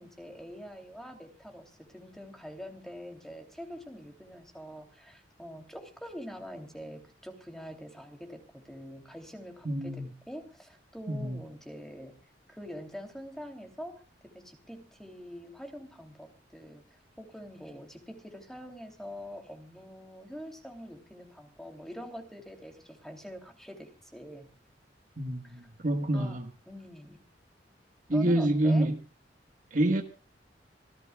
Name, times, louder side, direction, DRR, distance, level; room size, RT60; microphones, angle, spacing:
voice 1, 0.0-12.1 12.5-24.5 25.4-25.6 26.1-26.4 26.7-27.2 28.1-28.9, equal, ahead, 3.0 m, -45 dB
voice 2, 9.6-10.1 11.1-11.4 25.2-26.5 28.1-29.0 29.7-30.0, right 1 dB, 45° right, 1.6 m, -27 dB
26.0 x 16.0 x 2.4 m
head